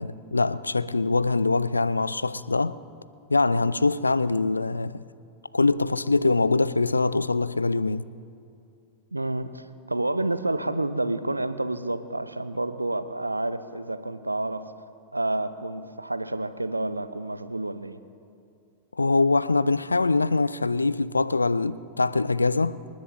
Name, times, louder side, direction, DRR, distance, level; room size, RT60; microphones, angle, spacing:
voice 1, 0.0-2.8 3.3-5.0 5.5-8.0 19.0-22.8, left 3 dB, 80° left, 0.3 m, -23 dB
voice 2, 9.1-14.6 15.1-18.0, right 2 dB, 85° right, 0.6 m, -29 dB
27.5 x 10.0 x 3.0 m
figure-of-eight pair, 90°, 0 cm